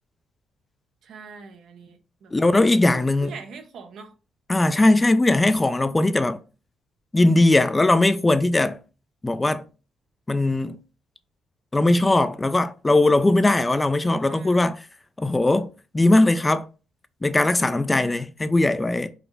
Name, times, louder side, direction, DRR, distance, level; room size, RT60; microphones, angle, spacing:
voice 1, 1.0-2.3 2.9-4.1 14.0-14.7 17.9-18.3, right 5 dB, 70° right, 0.9 m, -43 dB
voice 2, 2.3-3.3 4.5-6.4 7.1-8.8 9.2-9.6 10.3-10.8 11.7-14.9 15.2-16.7 17.2-19.1, left 2 dB, 20° left, 0.4 m, -19 dB
4.9 x 2.0 x 4.7 m
cardioid pair, 90°, 0 cm